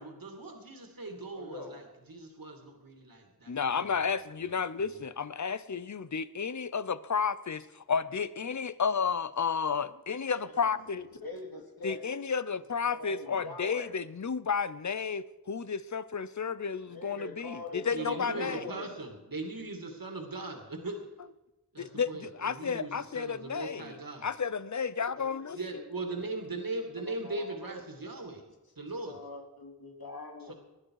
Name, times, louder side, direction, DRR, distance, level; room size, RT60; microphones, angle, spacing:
voice 1, 0.0-3.5 3.8-3.9 4.9-5.0 17.9-21.0 21.7-24.3 25.5-28.4 28.8-29.2 30.5-30.6, right 2 dB, 65° right, 2 dB, 2.6 m, -39 dB
voice 2, 1.3-1.8 10.2-10.7 11.2-12.1 12.9-13.9 16.9-18.9 25.1-25.8 26.1-26.2 27.1-28.1 29.1-30.5, left 2 dB, 70° left, 2 dB, 2.6 m, -43 dB
voice 3, 3.5-11.1 11.8-18.6 21.8-23.9 24.2-25.6, left 6 dB, 50° left, 16 dB, 0.7 m, -32 dB
19.5 x 11.5 x 4.8 m, 1.0 s
wide cardioid pair, 45°, 37 cm